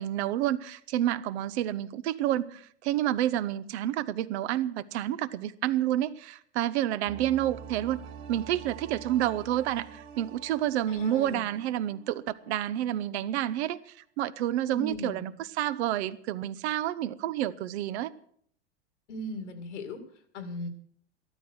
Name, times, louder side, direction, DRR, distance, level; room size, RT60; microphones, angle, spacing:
voice 1, 0.0-8.0 8.3-13.8 14.2-15.3 15.6-18.1, right 12 dB, 70° right, 0.9 m, -29 dB
sound 1, 7.1-12.7 13.0-13.1, right 7 dB, 55° right, 3.1 m, -46 dB
voice 2, 10.9-11.5 14.7-15.2 19.1-20.0 20.3-20.7, left 1 dB, 90° left, 2.4 m, -37 dB
13.0 x 13.0 x 6.2 m
hypercardioid pair, 115°, 35 cm